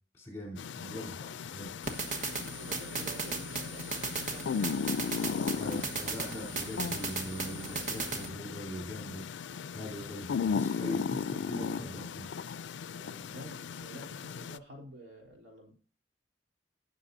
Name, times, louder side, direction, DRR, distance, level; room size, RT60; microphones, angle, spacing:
voice 1, 0.1-1.1 1.4-1.7 5.5-9.2 9.7-12.2, equal, 15° left, -1 dB, 4.0 m, -41 dB
sound 1, 0.6-14.6, left 6 dB, 85° left, 0.4 m, -37 dB
voice 2, 0.8-1.3 2.2-6.3 13.0-15.7, right 1 dB, 80° right, -1 dB, 3.6 m, -49 dB
sound 2, 1.8-8.3, right 4 dB, 45° right, 1.3 m, -37 dB
17.5 x 6.7 x 2.7 m, 0.40 s
head